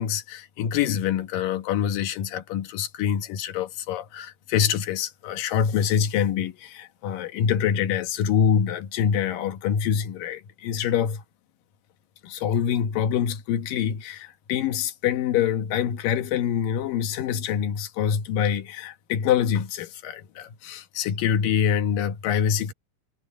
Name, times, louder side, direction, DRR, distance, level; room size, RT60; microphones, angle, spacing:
voice 1, 0.0-11.2 12.2-22.7, left 8 dB, 85° left, 3.0 m, -25 dB
omnidirectional pair, 3.8 m